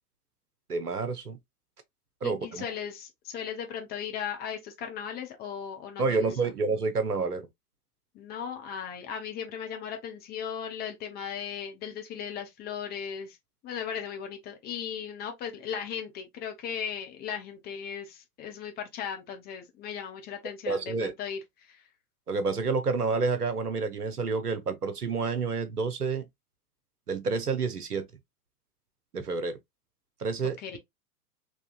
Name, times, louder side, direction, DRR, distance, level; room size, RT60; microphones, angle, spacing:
voice 1, 0.7-1.4 2.2-2.7 6.0-7.5 20.7-21.1 22.3-26.3 27.1-28.1 29.1-29.6 30.2-30.6, right 4 dB, 90° right, 0.7 m, -29 dB
voice 2, 2.2-6.3 8.1-13.4 13.6-21.8 30.6-30.8, left 8 dB, 20° left, 0.6 m, -37 dB
3.6 x 2.8 x 2.3 m
figure-of-eight pair, 95°, 45 cm